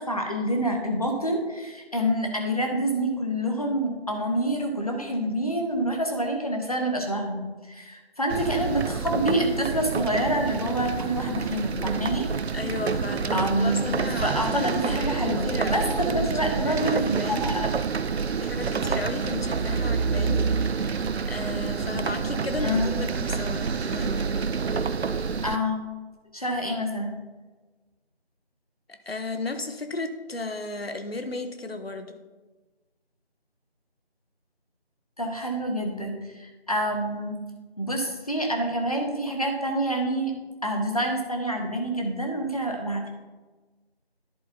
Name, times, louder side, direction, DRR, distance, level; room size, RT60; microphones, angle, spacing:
voice 1, 0.0-12.3 13.3-13.9 14.2-17.7 22.6-22.9 25.4-25.8 26.3-27.1 35.2-37.4 37.8-40.3 40.6-43.1, right 1 dB, 35° left, 2 dB, 1.0 m, -27 dB
sound 1, 8.3-25.6, right 5 dB, 80° right, 0.5 m, -28 dB
voice 2, 12.5-17.6 18.4-20.9 21.3-24.2 28.9-32.2, left 2 dB, 70° left, 8 dB, 0.9 m, -34 dB
11.0 x 7.6 x 2.7 m, 1.3 s
figure-of-eight pair, 175°, 32 cm